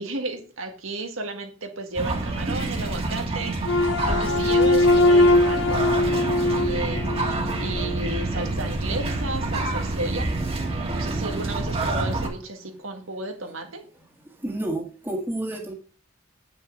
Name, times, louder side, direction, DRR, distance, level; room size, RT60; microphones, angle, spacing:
voice 1, 0.0-5.8 6.5-10.3 10.9-13.8, right 2 dB, 85° right, 4 dB, 1.9 m, -33 dB
sound 1, 1.9-12.3, right 2 dB, 30° right, 1.6 m, -27 dB
sound 2, 3.6-8.0, left 2 dB, 60° left, 0.6 m, -21 dB
voice 2, 14.2-15.7, right 1 dB, 10° right, 1 dB, 1.6 m, -30 dB
9.3 x 6.0 x 5.2 m, 0.40 s
head